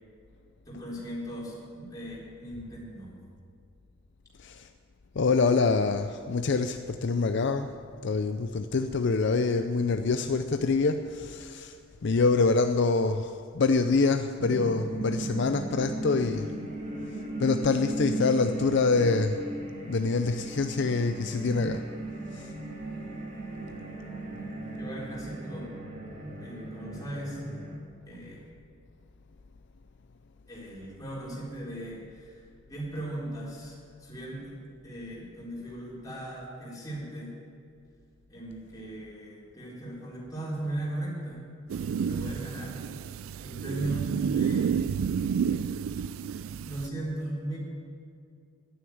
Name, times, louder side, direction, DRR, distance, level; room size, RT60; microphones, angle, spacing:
voice 1, 0.7-3.2 24.8-25.7 26.4-27.4 28.1-28.4 30.5-32.3 32.7-34.5 34.8-37.3 38.3-41.5 42.0-42.8 43.4-44.7 46.6-47.6, right 1 dB, 20° left, -5 dB, 4.0 m, -37 dB
voice 2, 5.2-7.7 8.0-16.5 17.4-19.4 19.9-21.8 22.3-22.5, left 4 dB, 60° left, 7 dB, 0.5 m, -26 dB
sound 1, 14.4-27.8, right 2 dB, 40° right, 1.7 m, -37 dB
sound 2, 41.7-46.9, right 7 dB, 90° right, 0.3 m, -30 dB
11.0 x 9.5 x 9.5 m, 2.3 s
head